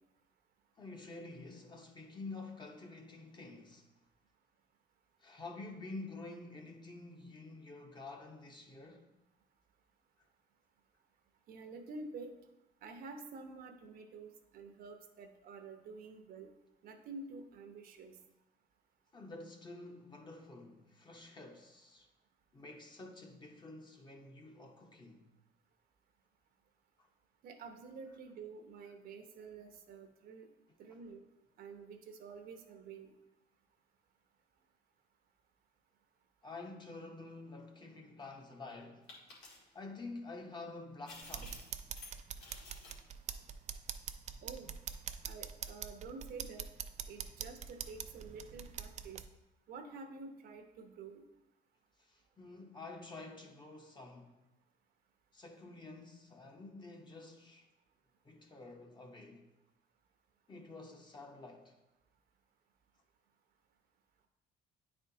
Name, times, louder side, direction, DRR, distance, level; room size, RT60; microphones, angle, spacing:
voice 1, 0.8-3.9 5.2-9.1 19.1-22.1 22.5-25.3 27.0-27.1 28.1-28.2 30.9-31.0 36.4-39.1 39.7-41.7 52.0-54.3 55.3-57.7 58.2-59.5 60.5-61.7, left 3 dB, 25° left, 0.9 m, -49 dB
voice 2, 11.5-12.3 12.8-16.5 16.8-18.2 27.4-30.5 30.8-31.2 31.6-33.1 44.4-44.7 45.2-46.7 47.1-49.2 49.7-51.2, right 4 dB, 60° right, 0.8 m, -49 dB
sound 1, 39.1-39.7 41.1-42.1 42.4-43.0, left 3 dB, 85° left, 1.8 m, -52 dB
sound 2, 41.2-49.2, right 8 dB, 45° right, 0.4 m, -44 dB
9.4 x 4.3 x 2.8 m
cardioid pair, 110°, 17 cm